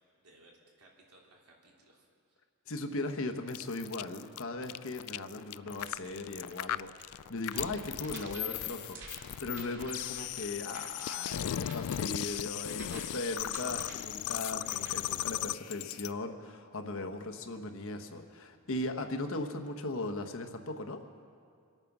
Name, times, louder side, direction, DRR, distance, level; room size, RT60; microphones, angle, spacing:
voice 1, 0.2-2.4, right 2 dB, 85° right, -2 dB, 3.3 m, -61 dB
voice 2, 2.7-21.0, left 2 dB, 60° left, 5 dB, 1.1 m, -38 dB
sound 1, 3.5-16.1, left 13 dB, 75° left, 0.3 m, -37 dB
sound 2, 5.6-15.1, right 2 dB, 55° right, 2.7 m, -51 dB
25.5 x 9.1 x 6.1 m, 2.3 s
head